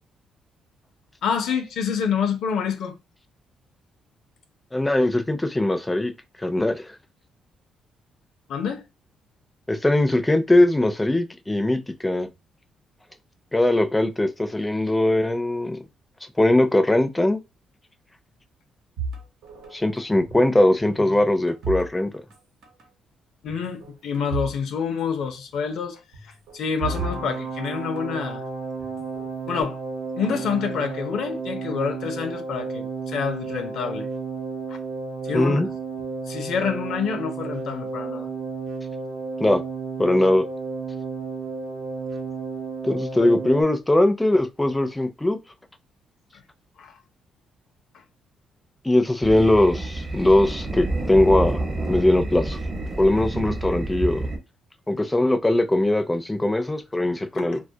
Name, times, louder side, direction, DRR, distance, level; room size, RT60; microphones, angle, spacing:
voice 1, 1.2-3.0 8.5-8.8 23.4-28.4 29.5-29.8 30.2-34.1 34.7-34.8 35.3-35.6 36.3-38.3 46.8-46.9 57.3-57.5, left 6 dB, 75° left, 0.5 m, -27 dB
voice 2, 4.7-6.1 6.4-6.9 9.7-12.3 13.5-15.8 16.4-17.4 19.7-22.1 35.3-35.7 39.4-39.6 40.0-40.5 42.8-45.4 48.8-51.6 51.9-52.6 53.0-54.3 54.9-57.6, left 1 dB, 10° left, 0.4 m, -20 dB
sound 1, 19.0-20.5 20.8-22.4 22.6-22.9 23.5-24.6 24.8-24.9 26.1-28.2 28.8-29.6, right 4 dB, 85° right, 0.9 m, -35 dB
sound 2, 26.8-43.6, right 4 dB, 60° right, 0.6 m, -32 dB
sound 3, 49.2-54.4, right 2 dB, 30° right, 0.8 m, -28 dB
2.2 x 2.1 x 2.7 m
cardioid pair, 90°, 0 cm